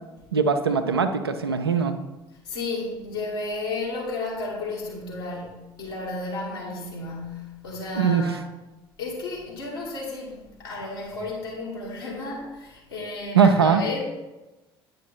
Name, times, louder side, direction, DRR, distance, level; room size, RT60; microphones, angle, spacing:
voice 1, 0.3-2.0 8.0-8.4 13.3-13.8, right 6 dB, 80° right, 7 dB, 0.5 m, -21 dB
voice 2, 2.4-8.4 9.0-14.0, left 3 dB, 75° left, -5 dB, 2.4 m, -33 dB
9.2 x 5.3 x 4.2 m, 1.1 s
figure-of-eight pair, 55°, 13 cm